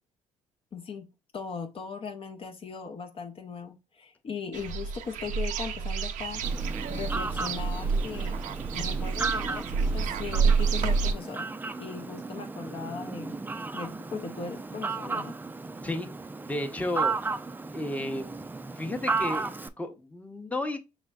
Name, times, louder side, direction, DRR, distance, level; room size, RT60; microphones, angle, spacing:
voice 1, 0.7-1.1 1.3-6.4 6.9-8.4 8.7-11.5 11.8-13.4 13.7-15.4, left 5 dB, 45° left, 0.6 m, -38 dB
sound 1, 4.5-11.1, right 5 dB, 70° right, 0.5 m, -28 dB
Fowl, 6.4-19.7, right 4 dB, 15° right, 0.4 m, -35 dB
voice 2, 16.4-17.1 17.7-18.3 18.8-20.8, left 1 dB, 10° left, 0.8 m, -33 dB
5.0 x 3.4 x 2.3 m
supercardioid pair, 65°, 13 cm